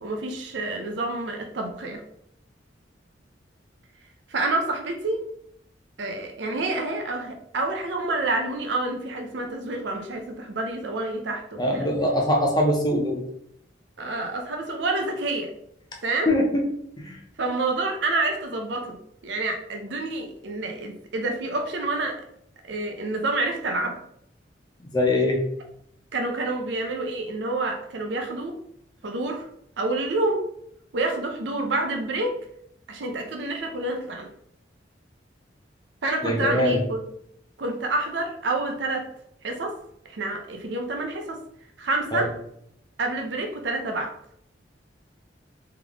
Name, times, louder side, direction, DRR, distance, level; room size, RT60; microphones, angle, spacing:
voice 1, 0.0-2.0 4.3-5.2 6.0-11.9 14.0-15.5 16.0-16.3 17.4-19.0 19.2-22.2 22.7-24.0 26.1-28.6 29.0-29.5 29.8-30.4 30.9-32.3 32.9-34.3 36.0-37.0 37.6-39.1 39.4-39.8 40.1-41.4 41.8-42.3 43.0-44.1, right 2 dB, 75° right, 3 dB, 0.6 m, -28 dB
voice 2, 11.6-13.2 16.3-16.6 17.0-17.2 24.9-25.4 36.2-36.8 42.1-42.3, left 1 dB, 25° left, 1 dB, 0.6 m, -22 dB
3.6 x 3.3 x 3.4 m, 0.71 s
head